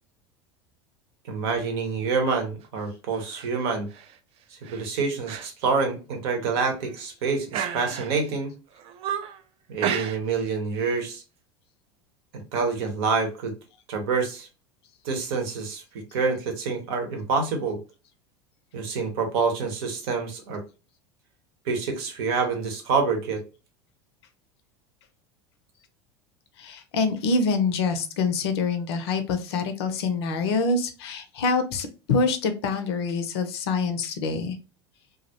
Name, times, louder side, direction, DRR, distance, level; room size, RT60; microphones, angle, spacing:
voice 1, 1.2-3.9 4.5-8.5 9.7-11.2 12.3-13.5 13.9-14.5 15.0-15.8 16.1-17.8 18.7-20.6 21.6-23.4, right 4 dB, 65° right, 4 dB, 0.8 m, -27 dB
sound 1, 3.1-3.5 3.9-4.2 4.6-4.9 5.3-5.5 5.8-5.9 6.5-7.0 7.5-8.3 8.7-9.4 9.8-10.5 10.7-11.0, right 9 dB, 45° right, 0.4 m, -32 dB
voice 2, 26.6-34.6, left 4 dB, 75° left, 8 dB, 0.5 m, -26 dB
2.3 x 2.0 x 2.8 m, 0.32 s
hypercardioid pair, 85°, 14 cm